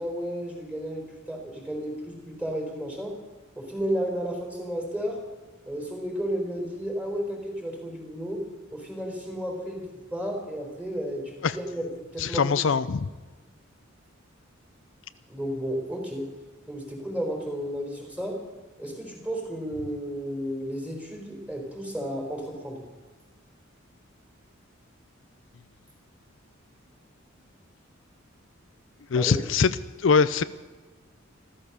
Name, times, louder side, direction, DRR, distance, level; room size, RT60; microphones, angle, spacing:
voice 1, 0.0-3.2 3.6-5.2 5.7-8.4 8.7-9.8 10.1-11.8 12.1-12.5 15.3-16.3 16.7-18.4 18.8-22.8 29.2-29.3, equal, 5° right, 1 dB, 4.1 m, -32 dB
voice 2, 12.2-13.1 29.1-29.7 30.0-30.4, left 5 dB, 65° left, 14 dB, 0.5 m, -22 dB
14.0 x 14.0 x 6.9 m, 1.3 s
head